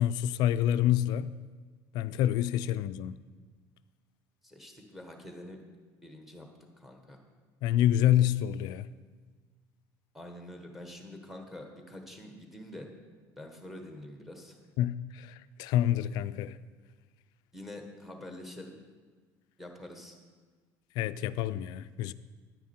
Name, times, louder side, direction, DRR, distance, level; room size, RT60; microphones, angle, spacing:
voice 1, 0.0-1.3 1.9-3.2 7.6-8.9 14.8-16.6 21.0-22.1, left 11 dB, 65° left, 0.4 m, -27 dB
voice 2, 4.4-5.6 6.0-6.5 6.8-7.2 10.1-12.9 13.4-14.6 17.5-18.7 19.6-20.2, left 1 dB, ahead, 1.2 m, -46 dB
9.9 x 9.4 x 4.4 m
cardioid pair, 165°, 8 cm